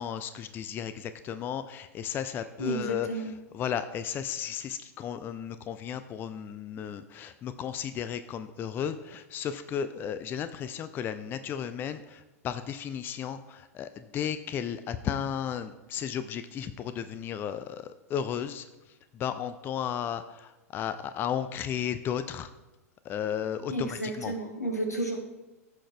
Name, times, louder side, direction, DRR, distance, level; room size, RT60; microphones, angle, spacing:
voice 1, 0.0-18.7 19.1-22.5 23.0-24.3, left 8 dB, 25° left, 11 dB, 0.4 m, -34 dB
voice 2, 2.6-3.3 23.7-25.2, right 2 dB, 85° left, 5 dB, 1.2 m, -32 dB
14.5 x 6.2 x 2.2 m, 1.0 s
figure-of-eight pair, 90°, 8 cm